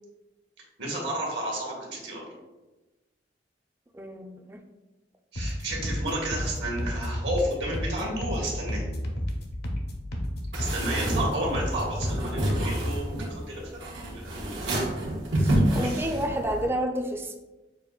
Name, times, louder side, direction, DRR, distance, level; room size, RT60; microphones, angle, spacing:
voice 1, 0.8-2.3 5.3-8.8 10.5-14.5 15.5-16.2, right 1 dB, 70° right, -3 dB, 1.4 m, -32 dB
voice 2, 3.9-4.6 15.4-17.4, equal, 15° right, 3 dB, 0.4 m, -30 dB
sound 1, 5.4-13.0, equal, 60° left, 0.7 m, -32 dB
sound 2, 10.5-16.7, right 1 dB, 90° right, 1.4 m, -29 dB
6.8 x 2.4 x 2.3 m, 1.1 s
head